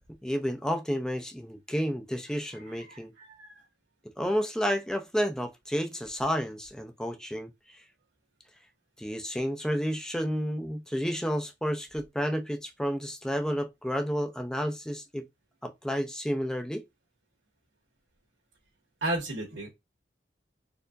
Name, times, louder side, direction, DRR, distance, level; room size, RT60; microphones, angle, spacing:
voice 1, 0.2-3.1 4.2-7.5 9.0-15.3 15.6-16.8, equal, 5° left, 0.6 m, -31 dB
voice 2, 2.5-3.6 19.0-19.7, right 2 dB, 80° right, 1.5 m, -35 dB
4.4 x 2.8 x 2.5 m
head